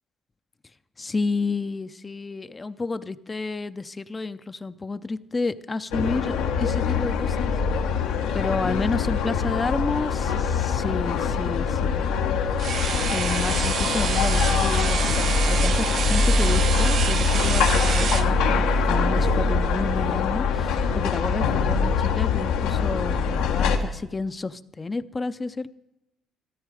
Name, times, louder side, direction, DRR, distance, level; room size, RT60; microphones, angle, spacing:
voice 1, 1.0-7.5 8.3-12.1 13.1-25.7, left 3 dB, 25° left, 12 dB, 0.6 m, -30 dB
sound 1, 5.9-23.8, left 5 dB, 90° left, 1.4 m, -23 dB
sound 2, 12.6-18.3, right 7 dB, 60° right, 0.6 m, -28 dB
13.5 x 13.5 x 4.9 m, 0.87 s
supercardioid pair, 70°, 0 cm